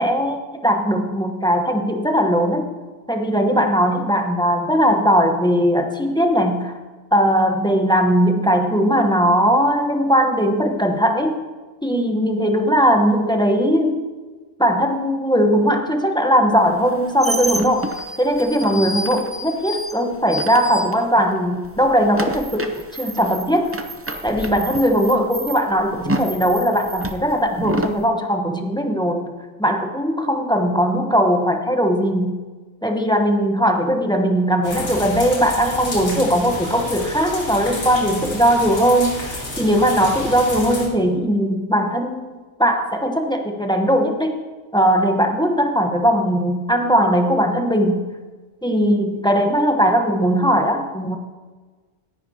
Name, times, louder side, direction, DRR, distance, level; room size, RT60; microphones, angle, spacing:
voice 1, 0.0-2.7 3.1-6.7 7.1-11.4 11.8-14.0 14.6-17.9 18.2-23.7 24.2-29.3 29.6-32.4 32.8-44.3 44.7-48.0 48.6-51.2, equal, 5° left, 3 dB, 0.9 m, -19 dB
sound 1, 16.7-21.4 21.6-28.0, right 1 dB, 20° right, 0.4 m, -29 dB
sound 2, 34.6-40.9, left 2 dB, 85° left, 2.4 m, -30 dB
17.5 x 10.5 x 2.9 m, 1.3 s
omnidirectional pair, 1.2 m